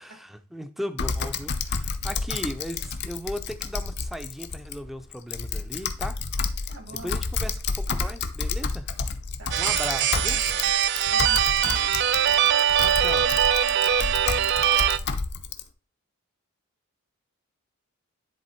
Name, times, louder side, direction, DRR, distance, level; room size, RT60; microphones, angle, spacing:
voice 1, 0.0-6.2 7.0-8.9 9.6-10.4 12.8-13.3, equal, ahead, 8 dB, 0.5 m, -36 dB
Typing, 1.0-15.6, left 4 dB, 50° left, 0.7 m, -30 dB
voice 2, 6.7-7.2 9.4-9.8 10.3-10.7 11.1-12.5, right 2 dB, 80° right, 1 dB, 3.2 m, -46 dB
sound 1, 9.5-15.0, right 9 dB, 50° right, 0.4 m, -22 dB
10.5 x 3.6 x 4.4 m, 0.36 s
head